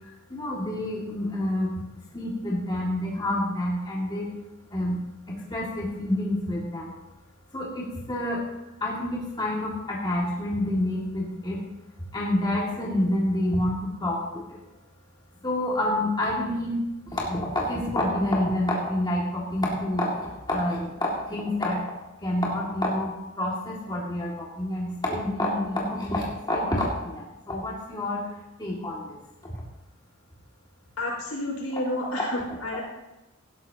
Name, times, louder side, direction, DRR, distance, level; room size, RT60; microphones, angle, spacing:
voice 1, 0.3-1.7 2.1-4.3 4.7-5.0 5.3-6.9 7.5-8.4 8.8-11.6 12.1-14.6 15.4-16.8 17.1-21.8 22.2-28.3 28.6-29.2, left 1 dB, 20° left, -5 dB, 2.2 m, -28 dB
voice 2, 31.0-32.8, left 1 dB, 80° left, -3 dB, 5.3 m, -30 dB
18.0 x 12.5 x 2.9 m, 0.99 s
head